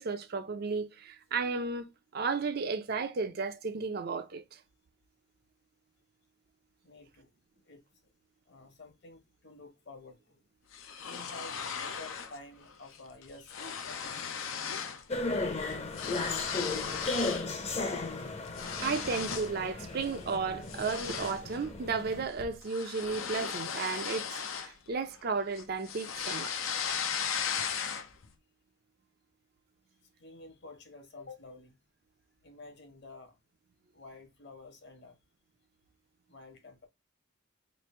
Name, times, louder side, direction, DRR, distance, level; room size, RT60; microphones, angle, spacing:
voice 1, 0.0-4.6 18.8-24.3 24.6-26.6, right 4 dB, 50° right, 0.5 m, -34 dB
voice 2, 6.8-7.3 7.6-8.1 8.5-10.4 11.0-13.6 13.8-14.4 24.7-24.9 30.0-31.8 32.4-33.4 33.9-35.2 36.3-36.9, left 3 dB, 55° left, 1.1 m, -51 dB
sound 1, 10.7-12.4 12.7-13.0 13.2-15.0 15.3-17.5 17.9-19.6 20.0-20.2 20.7-25.2 25.5-28.3, left 7 dB, 85° left, 0.6 m, -37 dB
sound 2, 15.1-22.2, left 3 dB, 30° left, 0.6 m, -35 dB
3.2 x 2.5 x 4.2 m
head